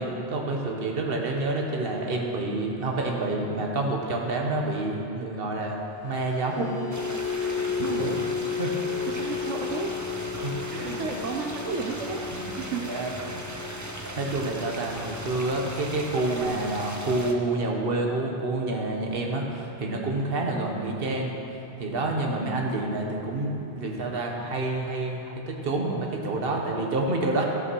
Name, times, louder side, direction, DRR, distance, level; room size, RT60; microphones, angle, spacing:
voice 1, 0.0-5.8 6.0-6.7 7.4-8.2 8.6-8.7 10.4-11.0 12.3-12.5 12.8-13.4 14.2-21.3 21.8-27.5, right 2 dB, 55° right, 0 dB, 1.4 m, -28 dB
sound 1, 5.9-22.3 22.7-23.0 23.3-23.5, left 6 dB, 30° left, 0.6 m, -35 dB
sound 2, 6.9-17.3, right 1 dB, 20° right, 0.6 m, -38 dB
voice 2, 7.9-8.2 9.1-9.9 10.3-10.4 10.7-12.8 22.4-22.8, right 5 dB, 80° right, 1 dB, 1.1 m, -33 dB
14.5 x 5.7 x 6.2 m, 2.8 s
omnidirectional pair, 1.2 m